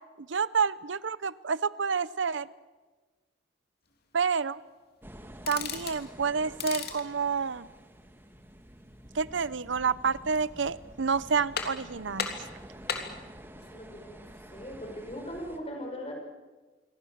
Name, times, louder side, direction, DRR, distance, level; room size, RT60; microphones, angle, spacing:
voice 1, 0.2-2.5 4.1-4.6 5.5-7.7 9.1-12.4, right 5 dB, 75° right, 18 dB, 0.7 m, -29 dB
sound 1, 5.0-15.6, equal, 10° right, 1.7 m, -49 dB
sound 2, 5.4-6.0 6.5-7.1 10.1-10.6 11.0-11.1 11.6-11.9 12.2-13.2, left 6 dB, 55° left, 3.1 m, -35 dB
voice 2, 13.6-16.1, equal, 30° left, 2 dB, 6.1 m, -40 dB
27.5 x 23.5 x 7.4 m, 1.3 s
head